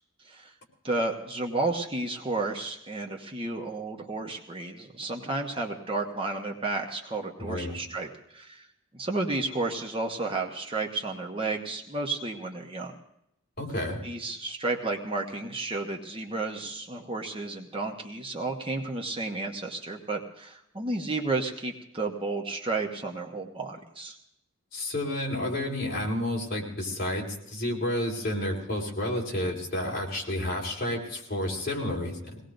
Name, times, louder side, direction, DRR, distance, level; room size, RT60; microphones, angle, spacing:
voice 1, 0.8-8.7 8.9-13.0 14.0-24.2, right 3 dB, 25° right, 1 dB, 1.1 m, -32 dB
voice 2, 7.4-7.8 13.6-14.0 24.7-32.4, left 1 dB, 45° left, -2 dB, 3.8 m, -30 dB
23.0 x 18.5 x 2.6 m, 0.79 s
head